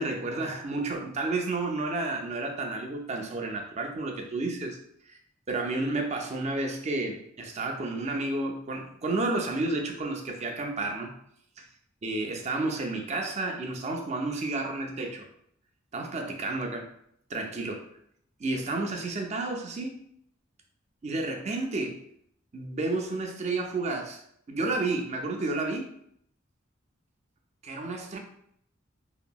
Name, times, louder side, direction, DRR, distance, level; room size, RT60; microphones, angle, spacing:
voice 1, 0.0-4.8 5.1-5.2 5.5-11.1 11.6-11.7 12.0-15.3 15.9-16.9 17.3-17.9 18.4-20.0 21.0-22.0 22.5-24.2 24.5-25.9 27.6-28.2, right 2 dB, 35° right, 3 dB, 0.4 m, -31 dB
2.9 x 2.6 x 2.2 m, 0.68 s
head